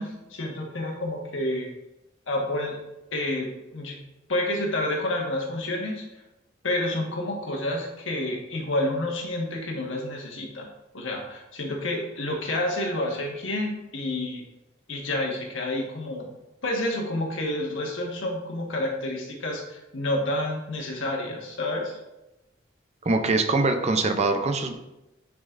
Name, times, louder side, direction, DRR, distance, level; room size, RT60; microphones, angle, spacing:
voice 1, 0.0-1.7 2.3-2.7 3.1-3.9 4.3-6.0 6.6-10.7 10.9-14.4 14.9-16.3 16.6-22.0, left 1 dB, 75° left, 0 dB, 1.4 m, -29 dB
voice 2, 23.0-24.7, right 3 dB, 35° right, 7 dB, 0.5 m, -23 dB
9.6 x 5.2 x 2.5 m, 0.95 s
head